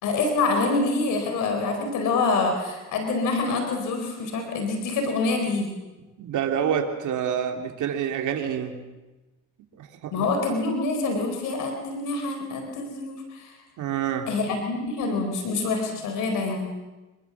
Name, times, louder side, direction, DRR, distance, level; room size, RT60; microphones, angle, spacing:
voice 1, 0.0-5.7 10.1-13.5 14.3-16.7, left 3 dB, 90° left, 4 dB, 4.4 m, -26 dB
voice 2, 6.2-8.8 9.8-10.3 13.8-14.3, right 8 dB, 80° right, 3 dB, 3.0 m, -27 dB
26.5 x 22.0 x 7.2 m, 1.1 s
cardioid pair, 90°, 30 cm